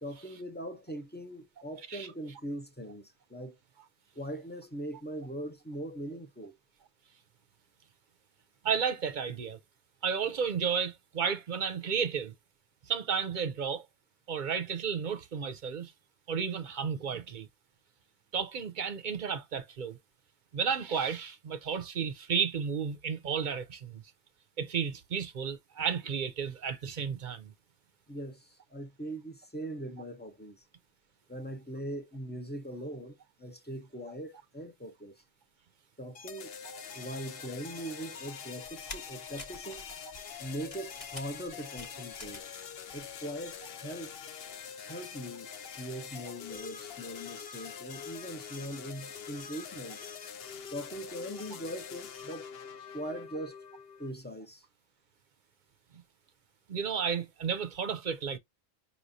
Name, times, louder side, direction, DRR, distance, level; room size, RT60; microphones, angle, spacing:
voice 1, 0.0-3.6 4.1-6.6 28.1-30.6 31.3-35.2 36.0-36.6 36.9-39.8 40.4-42.4 42.9-44.1 44.8-50.0 50.7-52.5 52.9-53.6 54.0-54.6, right 1 dB, 15° left, 0.4 m, -41 dB
voice 2, 8.6-9.6 10.0-12.3 12.9-13.8 14.3-15.9 16.3-17.5 18.3-20.0 20.5-24.0 24.6-27.5 36.7-36.8 56.7-58.4, right 6 dB, 50° right, 0.7 m, -32 dB
sound 1, 36.1-54.1, left 7 dB, 60° left, 0.8 m, -45 dB
sound 2, 38.6-42.6 42.9-43.7 44.0-44.1, left 2 dB, 30° left, 1.0 m, -48 dB
5.6 x 3.0 x 2.7 m
omnidirectional pair, 1.2 m